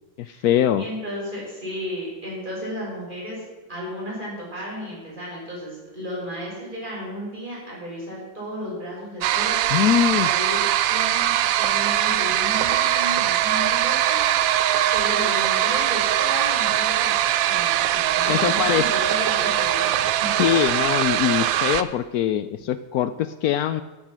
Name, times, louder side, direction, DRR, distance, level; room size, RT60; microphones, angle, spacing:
voice 1, 0.2-0.8 9.7-10.3 18.3-18.9 20.3-23.8, left 11 dB, 90° left, 13 dB, 0.8 m, -22 dB
voice 2, 0.8-9.6 10.2-14.2 14.8-17.1 17.4-20.3, equal, 25° right, -5 dB, 5.6 m, -33 dB
sound 1, 9.2-21.8, right 12 dB, 75° right, 1.3 m, -21 dB
13.5 x 9.8 x 6.2 m, 1.2 s
omnidirectional pair, 2.2 m